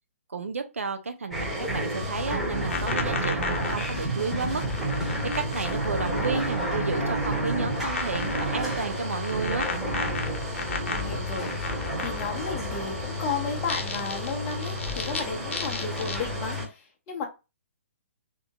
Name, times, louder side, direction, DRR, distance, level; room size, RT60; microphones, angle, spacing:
voice 1, 0.3-4.6 5.0-9.7, right 4 dB, 70° right, 0.6 m, -32 dB
sound 1, 1.3-16.7, equal, 5° right, 1.1 m, -30 dB
sound 2, 2.0-6.7 6.9-7.5 7.9-12.6 13.5-15.2 15.5-16.2, left 5 dB, 60° left, 0.7 m, -35 dB
voice 2, 10.9-17.3, left 5 dB, 25° left, 0.8 m, -34 dB
3.5 x 2.7 x 2.5 m
figure-of-eight pair, 125°, 7 cm